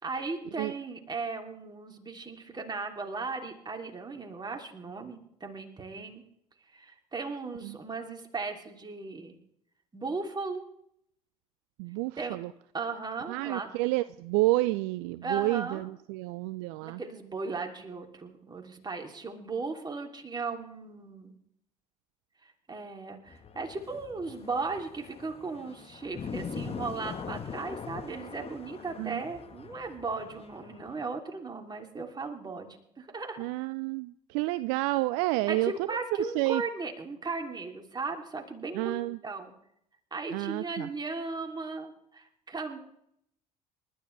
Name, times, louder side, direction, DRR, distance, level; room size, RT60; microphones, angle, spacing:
voice 1, 0.0-6.2 6.7-9.3 9.9-10.7 12.2-12.4 12.7-13.7 15.2-15.8 16.8-21.3 22.4-33.4 35.5-39.5 40.1-42.8, right 4 dB, 20° right, 3 dB, 3.0 m, -37 dB
voice 2, 11.8-12.5 13.3-17.0 29.0-29.2 33.4-35.7 36.4-36.6 38.7-39.2 40.3-40.9, right 20 dB, 60° right, 15 dB, 0.5 m, -29 dB
sound 1, 23.3-31.0, left 6 dB, 30° left, 1.4 m, -42 dB
29.5 x 13.0 x 3.3 m, 0.74 s
figure-of-eight pair, 60°, 19 cm